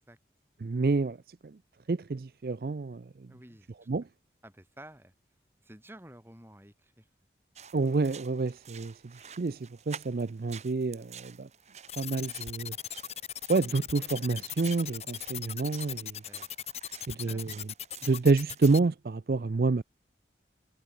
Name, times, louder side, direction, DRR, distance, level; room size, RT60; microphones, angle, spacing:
voice 1, 0.6-1.2 1.4-1.6 1.9-3.0 3.9-4.1 7.7-8.9 9.4-11.5 12.0-12.7 13.5-16.2 17.1-17.5 18.0-19.8, right 3 dB, 55° right, 0.5 m, -28 dB
voice 2, 3.3-3.9 4.4-5.1 5.6-7.1 16.3-16.5 17.3-17.6, right 1 dB, 15° right, 5.9 m, -51 dB
sound 1, 7.5-18.8, right 7 dB, 40° right, 7.1 m, -50 dB
sound 2, 11.9-18.8, left 10 dB, 35° left, 1.9 m, -38 dB
head